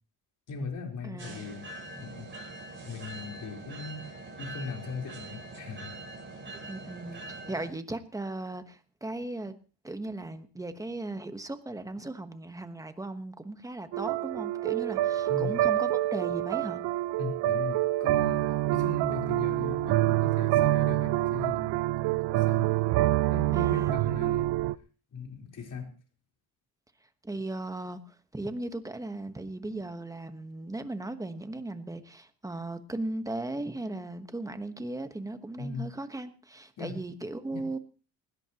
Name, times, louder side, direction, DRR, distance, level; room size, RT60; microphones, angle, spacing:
voice 1, 0.5-2.3 2.8-5.9 15.3-15.6 17.2-22.7 23.3-24.5 25.1-25.9 35.6-35.9 36.8-37.0 37.5-37.6, left 5 dB, 50° left, 1 dB, 4.1 m, -39 dB
voice 2, 1.0-1.4 6.5-9.5 9.8-16.8 23.5-23.9 27.2-28.0 28.3-37.8, right 2 dB, 10° right, 9 dB, 1.2 m, -37 dB
sound 1, 1.2-7.7, right 2 dB, 30° right, 5.0 m, -43 dB
sound 2, 13.9-24.7, right 15 dB, 85° right, 0.6 m, -26 dB
20.0 x 17.0 x 3.0 m, 0.36 s
cardioid pair, 135°, 41 cm